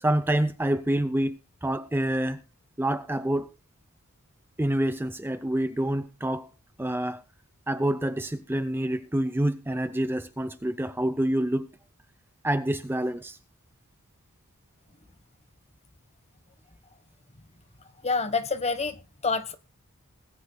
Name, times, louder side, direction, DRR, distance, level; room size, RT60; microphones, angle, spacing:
voice 1, 0.0-2.4 2.8-3.5 4.6-6.5 6.8-7.2 7.7-11.7 12.4-13.4, right 1 dB, 10° right, 0.5 m, -27 dB
voice 2, 18.0-19.5, left 4 dB, 30° left, 1.2 m, -27 dB
20.5 x 11.0 x 2.3 m
head